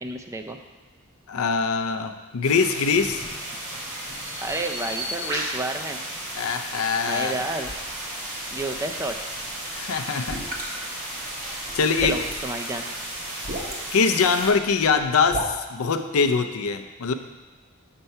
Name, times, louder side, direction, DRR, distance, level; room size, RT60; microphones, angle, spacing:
voice 1, 0.0-0.6 4.4-6.0 7.1-7.7 8.5-9.1 12.0-12.8, right 2 dB, 15° right, 4 dB, 0.3 m, -30 dB
voice 2, 1.3-3.2 6.3-7.3 9.7-10.4 11.7-12.2 13.9-17.1, left 5 dB, 75° left, 8 dB, 0.5 m, -23 dB
sound 1, 2.4-14.5, right 1 dB, 65° right, 2.6 m, -35 dB
Bird vocalization bird call bird song, 2.8-7.0, equal, 90° right, 2.3 m, -37 dB
sound 2, 7.2-15.4, right 1 dB, 40° right, 1.0 m, -39 dB
6.8 x 4.5 x 5.4 m, 1.2 s
head